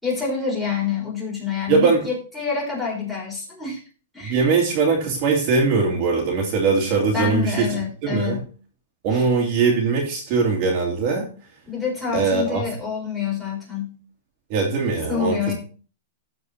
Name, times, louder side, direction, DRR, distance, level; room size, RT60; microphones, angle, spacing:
voice 1, 0.0-3.8 4.1-4.5 7.1-8.5 9.1-9.2 11.7-13.9 15.1-15.5, left 6 dB, 5° left, -3 dB, 4.0 m, -27 dB
voice 2, 1.7-2.0 4.2-7.7 8.0-8.4 9.0-11.3 12.1-12.6 14.5-15.5, right 4 dB, 40° right, -1 dB, 2.4 m, -21 dB
13.5 x 4.7 x 4.1 m, 0.38 s
hypercardioid pair, 155°, 0 cm